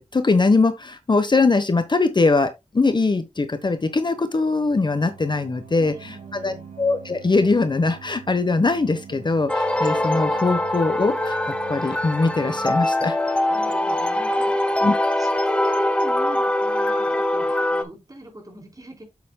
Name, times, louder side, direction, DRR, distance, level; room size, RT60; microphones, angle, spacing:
voice 1, 0.0-5.9 6.3-11.4 11.7-13.2 14.8-14.9, left 3 dB, 40° left, 1.0 m, -21 dB
sound 1, 3.6-12.7, right 7 dB, 85° right, 2.0 m, -44 dB
voice 2, 5.7-6.7 13.5-19.0, right 1 dB, 30° right, 3.9 m, -41 dB
sound 2, 9.5-17.8, left 1 dB, 10° left, 1.0 m, -23 dB
8.2 x 7.2 x 2.2 m
wide cardioid pair, 75°, 12 cm